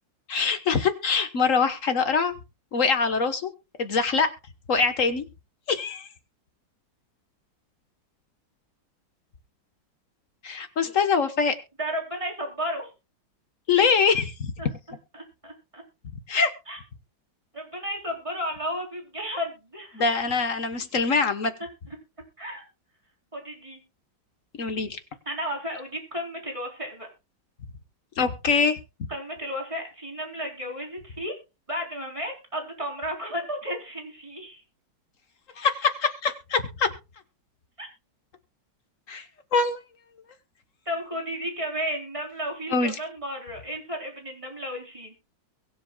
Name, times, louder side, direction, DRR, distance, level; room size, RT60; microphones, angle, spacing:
voice 1, 0.3-2.3 2.7-3.5 3.8-4.3 4.7-5.3 5.7-6.1 10.4-11.5 13.7-14.5 16.3-16.5 19.9-21.5 24.6-25.0 28.2-28.8 35.6-36.9 39.1-39.3 39.5-39.8 42.7-42.9, left 5 dB, 45° left, 9 dB, 1.5 m, -23 dB
voice 2, 11.8-12.9 14.6-14.7 15.1-15.8 16.7-16.8 17.5-20.0 22.4-22.6 23.3-23.8 25.3-27.1 29.1-31.3 31.7-34.6 37.8-37.9 40.9-45.2, equal, 15° right, 1 dB, 3.9 m, -33 dB
23.0 x 7.8 x 2.3 m, 0.28 s
omnidirectional pair, 2.0 m